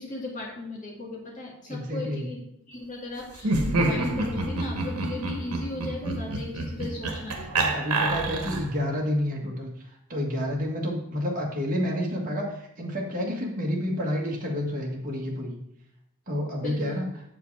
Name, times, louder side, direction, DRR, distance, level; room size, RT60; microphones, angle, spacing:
voice 1, 0.0-2.4 2.7-8.0 16.6-17.0, left 2 dB, 35° left, -3 dB, 2.0 m, -37 dB
voice 2, 1.7-2.3 7.5-9.7 10.1-15.5 16.3-17.0, equal, 35° right, -2 dB, 1.7 m, -29 dB
Laughter, 3.4-8.8, right 2 dB, 80° right, 1.3 m, -28 dB
8.0 x 5.0 x 4.7 m, 0.74 s
head